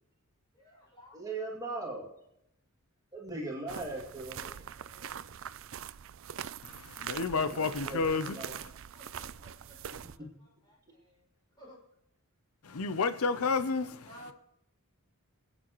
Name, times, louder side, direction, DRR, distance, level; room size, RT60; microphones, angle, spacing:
voice 1, 0.5-1.3 4.2-5.2 8.9-11.2 11.6-11.8 14.0-14.3, equal, 20° left, 6.3 m, -56 dB
voice 2, 1.1-2.1 3.1-4.6 7.3-8.5, right 2 dB, 15° right, 2.3 m, -39 dB
sound 1, 3.7-10.2, right 8 dB, 60° right, 0.5 m, -43 dB
voice 3, 6.6-8.7 12.6-14.0, left 4 dB, 75° left, 0.7 m, -31 dB
26.5 x 9.0 x 3.1 m
head